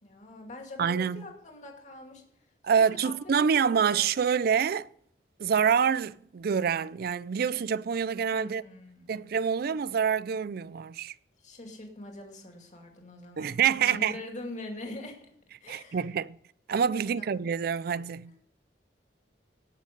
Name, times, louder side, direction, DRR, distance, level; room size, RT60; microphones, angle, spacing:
voice 1, 0.0-2.2 3.0-3.9 4.2-4.3 8.3-9.3 11.4-15.3 15.6-16.0 17.1-17.3 18.2-18.3, left 2 dB, 45° left, 2.4 m, -44 dB
voice 2, 0.8-1.3 2.6-4.9 5.4-8.6 9.1-11.1 13.4-14.2 15.7-16.4 16.7-18.3, right 7 dB, 60° right, 0.4 m, -26 dB
18.0 x 6.4 x 5.3 m
head